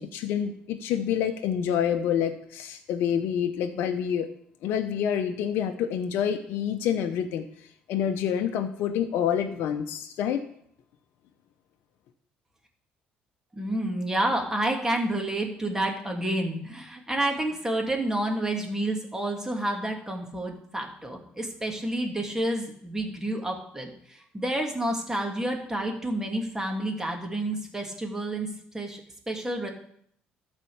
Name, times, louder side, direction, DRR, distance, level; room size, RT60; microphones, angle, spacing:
voice 1, 0.0-4.3 4.6-7.4 7.9-10.4, left 8 dB, 70° left, 6 dB, 0.8 m, -27 dB
voice 2, 13.5-29.0 29.3-29.7, right 1 dB, 15° right, 1 dB, 2.7 m, -29 dB
13.0 x 4.4 x 7.0 m, 0.67 s
supercardioid pair, 65°, 4 cm